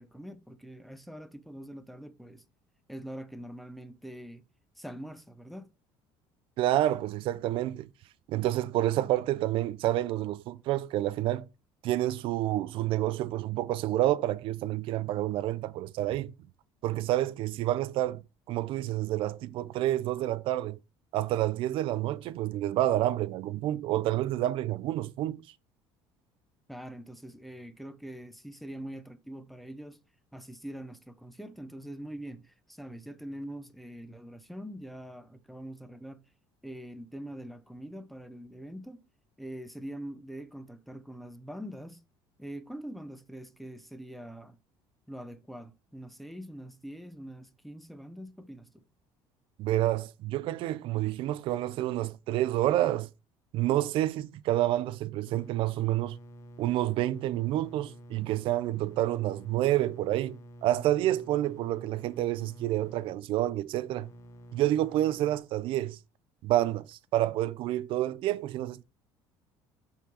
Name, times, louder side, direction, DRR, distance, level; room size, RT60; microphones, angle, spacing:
voice 1, 0.0-2.4 2.9-4.5 4.8-5.7 26.7-30.0 30.3-36.2 36.6-39.0 39.4-42.0 42.4-44.6 45.1-48.8, right 1 dB, ahead, 0.6 m, -43 dB
voice 2, 6.6-7.9 8.3-11.5 11.8-16.3 16.8-18.2 18.5-20.8 21.1-25.4 49.6-53.1 53.5-56.2 56.6-64.1 64.5-66.0 66.4-68.8, right 14 dB, 65° right, 0.5 m, -29 dB
sound 1, 55.3-65.4, right 1 dB, 30° left, 0.9 m, -50 dB
5.6 x 3.8 x 4.8 m
cardioid pair, 120°, 10 cm